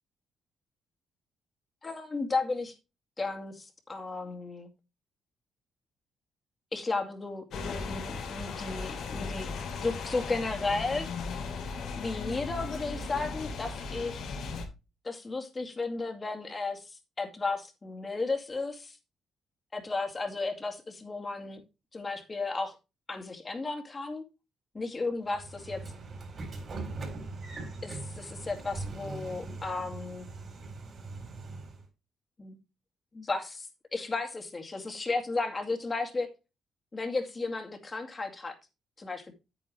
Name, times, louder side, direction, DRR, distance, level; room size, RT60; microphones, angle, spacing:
voice 1, 1.8-2.7 3.2-4.7 6.7-9.5 9.8-11.1 11.9-14.2 15.0-19.0 19.7-21.6 21.9-22.8 23.1-24.2 24.7-25.8 27.8-30.3 32.4-32.6 33.1-36.3 36.9-38.6 39.0-39.3, left 3 dB, 30° left, 2.3 m, -34 dB
sound 1, 7.5-14.7, left 4 dB, 75° left, 2.9 m, -37 dB
Train / Sliding door, 25.3-31.8, right 3 dB, 45° right, 3.9 m, -41 dB
9.3 x 8.9 x 3.1 m
cardioid pair, 90°, 0 cm